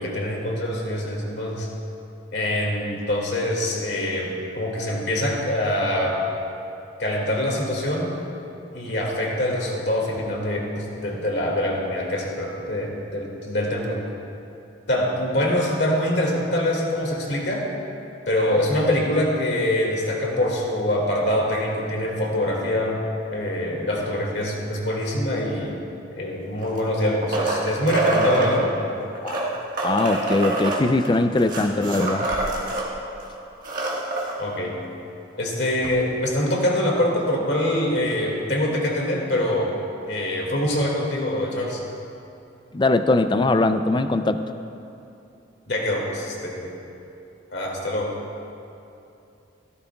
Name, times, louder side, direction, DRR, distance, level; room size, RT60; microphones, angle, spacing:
voice 1, 0.0-1.7 2.3-6.2 7.0-8.1 8.7-14.0 14.9-17.7 18.3-23.0 23.3-25.8 26.2-28.8 34.4-34.8 35.4-39.7 40.1-41.8 45.7-46.7 47.5-48.1, left 1 dB, 65° left, -1 dB, 2.0 m, -24 dB
sound 1, 26.6-28.5 29.1-32.9 33.2-33.3 33.5-34.3 35.8-35.9, right 2 dB, 45° right, 1.5 m, -25 dB
voice 2, 29.8-32.3 42.7-44.4, left 2 dB, 25° left, 9 dB, 0.4 m, -21 dB
16.0 x 13.5 x 2.3 m, 2.8 s
head